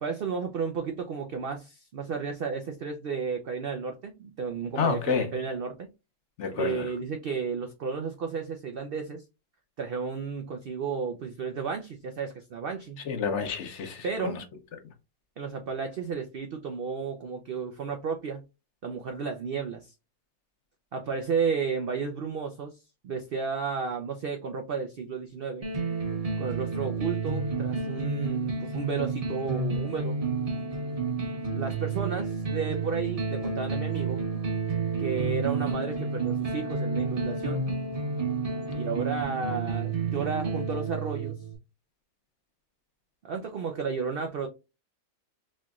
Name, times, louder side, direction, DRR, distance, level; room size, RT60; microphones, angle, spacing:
voice 1, 0.0-5.9 6.5-9.2 9.8-13.0 14.0-14.4 15.4-18.4 18.8-19.9 20.9-22.8 23.0-25.7 26.4-30.2 31.5-34.2 35.0-37.6 38.7-41.4 43.2-44.5, right 5 dB, 75° right, 0.5 m, -32 dB
voice 2, 4.8-5.3 6.4-6.9 13.1-14.4, left 5 dB, 60° left, 0.9 m, -29 dB
sound 1, 25.6-41.5, right 4 dB, 35° right, 0.6 m, -30 dB
4.3 x 2.9 x 2.3 m
omnidirectional pair, 1.6 m